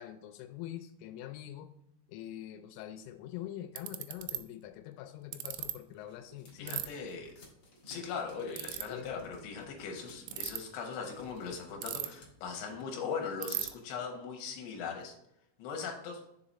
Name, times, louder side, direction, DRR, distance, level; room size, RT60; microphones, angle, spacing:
voice 1, 0.0-1.7 2.1-6.8 8.9-9.3, left 12 dB, 85° left, 5 dB, 3.1 m, -44 dB
Ratchet pawl, 3.1-3.2 3.8-4.4 5.3-5.7 6.7-6.9 8.5-8.8 10.2-10.6 11.8-12.3 12.6-12.7 12.9-13.0 13.4-13.7, right 15 dB, 85° right, 2.6 m, -36 dB
sound 1, 5.5-12.8, left 2 dB, 50° left, 2.4 m, -57 dB
voice 2, 6.6-7.3 7.9-15.1 15.6-16.2, left 5 dB, 70° left, 2 dB, 2.8 m, -39 dB
7.3 x 3.9 x 4.1 m, 0.79 s
omnidirectional pair, 5.6 m